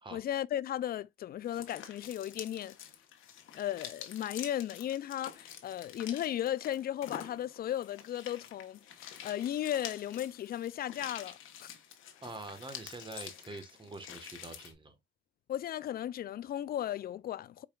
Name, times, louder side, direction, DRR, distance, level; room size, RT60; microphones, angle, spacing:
voice 1, 0.1-2.8 3.5-11.7 15.5-17.7, left 11 dB, 50° left, 0.4 m, -36 dB
sound 1, 1.4-14.7, left 9 dB, 85° left, 1.1 m, -48 dB
voice 2, 12.2-14.9, right 2 dB, 25° right, 1.3 m, -45 dB
4.8 x 4.7 x 2.3 m
cardioid pair, 90°, 20 cm